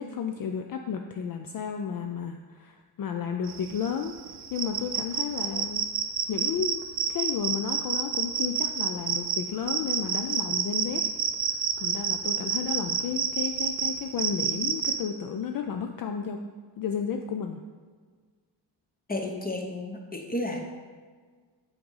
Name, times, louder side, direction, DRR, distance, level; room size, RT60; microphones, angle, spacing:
voice 1, 0.0-4.1 4.5-5.8 6.3-6.8 7.1-11.0 11.5-16.4 16.8-17.6, left 7 dB, 50° left, 4 dB, 0.4 m, -32 dB
sound 1, 3.5-15.0, right 7 dB, 40° right, 0.5 m, -29 dB
voice 2, 19.1-20.6, left 1 dB, 20° left, 2 dB, 0.7 m, -32 dB
5.7 x 3.8 x 5.5 m, 1.5 s
cardioid pair, 105°, 45 cm